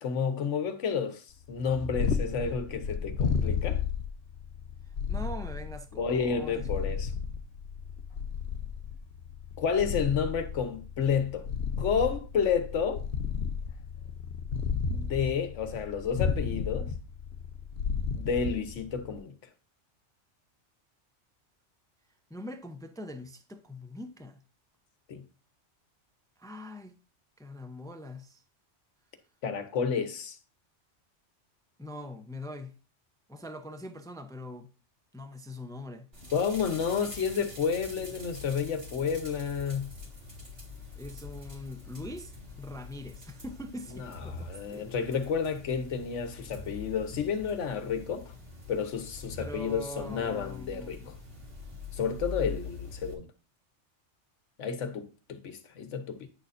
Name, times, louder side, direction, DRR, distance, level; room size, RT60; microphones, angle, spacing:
voice 1, 0.0-3.8 5.9-7.1 9.6-11.5 11.8-13.0 14.9-16.9 18.1-19.3 25.1-25.2 29.4-30.4 36.3-40.0 43.9-48.3 48.7-51.2 51.9-53.3 54.6-56.3, left 6 dB, 85° left, 1.2 m, -31 dB
Purr, 1.5-19.2, left 6 dB, 65° left, 1.0 m, -33 dB
voice 2, 5.1-6.7 22.3-24.4 26.4-27.0 27.4-28.4 31.8-32.8 33.3-34.7 35.1-36.1 41.0-42.3 42.6-44.9 49.4-51.2, left 1 dB, 5° left, 0.4 m, -42 dB
sound 1, 36.1-53.1, left 4 dB, 55° right, 2.5 m, -45 dB
9.5 x 6.7 x 2.6 m
omnidirectional pair, 1.2 m